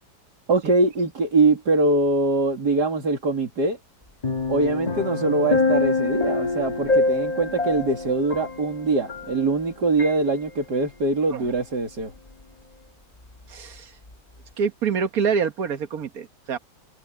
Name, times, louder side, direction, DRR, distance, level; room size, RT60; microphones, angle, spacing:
voice 1, 0.5-3.8 4.5-12.1, right 3 dB, 75° right, 3.4 m, -23 dB
sound 1, 4.2-9.7 10.0-10.2, left 3 dB, 25° left, 1.8 m, -25 dB
voice 2, 13.5-13.9 14.6-16.6, right 6 dB, 60° right, 1.9 m, -26 dB
omnidirectional pair, 1.8 m